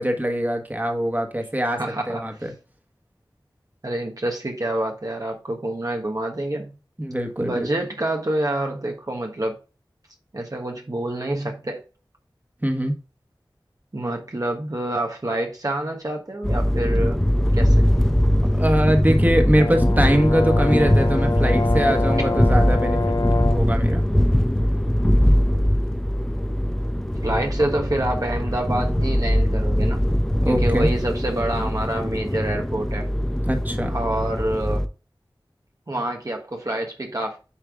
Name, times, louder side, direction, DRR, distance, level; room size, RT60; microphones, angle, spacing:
voice 1, 0.0-1.8 2.1-2.5 7.0-7.7 12.6-13.0 18.6-23.1 23.5-24.0 30.4-30.9 33.5-34.0, equal, 20° right, 1.5 m, -22 dB
voice 2, 1.8-2.2 3.8-6.8 7.4-9.6 10.3-11.8 13.9-17.2 17.5-17.9 22.2-22.3 27.2-30.0 30.5-33.1 33.9-34.9 35.9-37.4, right 1 dB, 45° right, 1.3 m, -27 dB
sound 1, 16.4-34.9, equal, 5° left, 0.7 m, -21 dB
Brass instrument, 19.6-23.7, left 4 dB, 55° left, 0.5 m, -27 dB
9.8 x 3.3 x 3.6 m
wide cardioid pair, 45°, 8 cm